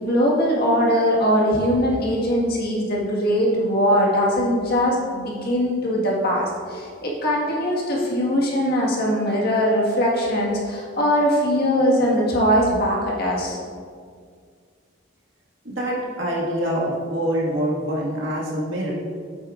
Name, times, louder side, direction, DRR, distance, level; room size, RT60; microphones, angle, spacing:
voice 1, 0.0-13.6, equal, 55° left, -3 dB, 1.8 m, -21 dB
voice 2, 15.6-18.9, equal, 70° right, -5 dB, 1.9 m, -25 dB
8.8 x 8.5 x 2.5 m, 2.1 s
head